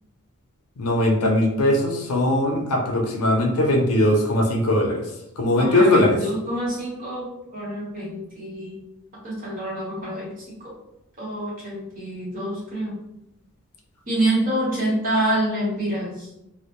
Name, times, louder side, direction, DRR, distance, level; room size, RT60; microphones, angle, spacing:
voice 1, 0.8-6.2, left 1 dB, 75° left, 2 dB, 0.5 m, -20 dB
voice 2, 5.6-8.7 9.2-10.3 10.6-10.7 11.2-12.9 14.1-16.3, right 1 dB, 40° right, -7 dB, 1.0 m, -26 dB
2.1 x 2.1 x 2.9 m, 0.85 s
head